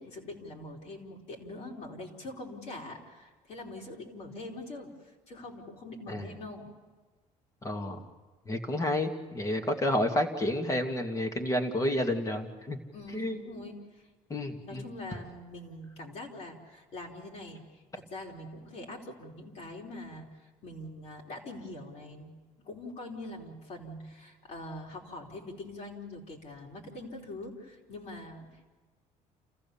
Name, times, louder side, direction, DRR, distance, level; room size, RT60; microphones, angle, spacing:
voice 1, 0.0-4.9 5.3-6.7 12.9-13.8 14.6-17.6 17.9-20.3 20.6-28.7, left 2 dB, 55° left, -1 dB, 4.6 m, -43 dB
voice 2, 7.6-8.1 8.5-12.8 13.1-13.4 14.3-14.9, left 1 dB, 25° left, 5 dB, 2.3 m, -30 dB
29.5 x 15.5 x 7.2 m, 1.3 s
cardioid pair, 115°, 14 cm